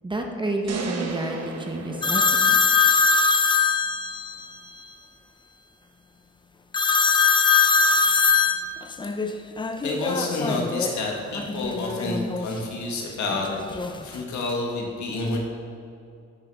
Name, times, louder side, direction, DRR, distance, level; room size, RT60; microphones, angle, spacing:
voice 1, 0.0-2.6, right 2 dB, 15° right, 2 dB, 1.0 m, -30 dB
sound 1, 0.7-3.0, right 4 dB, 55° right, 1.0 m, -34 dB
sound 2, 2.0-4.5 6.7-11.0 11.3-12.5 13.3-14.2, left 5 dB, 15° left, 0.5 m, -22 dB
voice 2, 9.8-15.4, left 2 dB, 70° left, 0 dB, 1.6 m, -29 dB
9.7 x 6.6 x 3.5 m, 2.5 s
cardioid pair, 90°, 30 cm